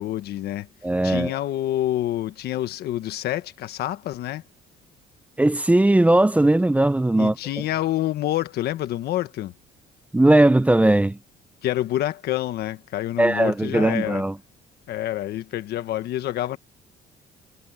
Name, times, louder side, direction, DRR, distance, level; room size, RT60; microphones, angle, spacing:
voice 1, 0.0-0.7 1.0-4.4 7.2-9.5 11.6-14.2 14.9-16.6, left 13 dB, 70° left, 1.4 m, -27 dB
voice 2, 0.8-1.3 5.4-7.3 10.1-11.2 13.2-14.3, right 1 dB, 10° right, 0.7 m, -18 dB
cardioid pair, 110°, 17 cm